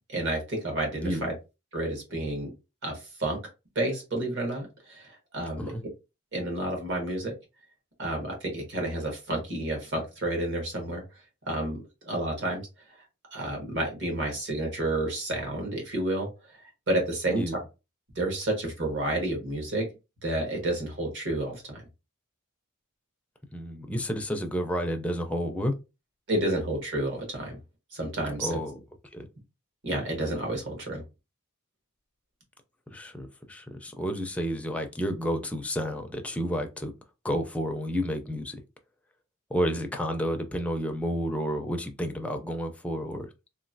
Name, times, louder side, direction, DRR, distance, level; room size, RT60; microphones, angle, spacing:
voice 1, 0.1-1.3 1.7-2.5 2.8-3.4 3.7-5.7 6.3-7.3 8.0-11.0 11.5-11.8 12.0-12.6 13.3-16.6 16.9-17.4 18.1-19.8 20.2-21.9 26.3-27.6 27.9-28.6 29.8-31.0, right 1 dB, 60° right, 1.3 m, -30 dB
voice 2, 23.5-25.7 28.4-28.8 29.1-29.3 32.9-36.9 37.2-38.6 39.5-43.3, equal, 5° left, 0.4 m, -30 dB
3.0 x 2.5 x 2.6 m
head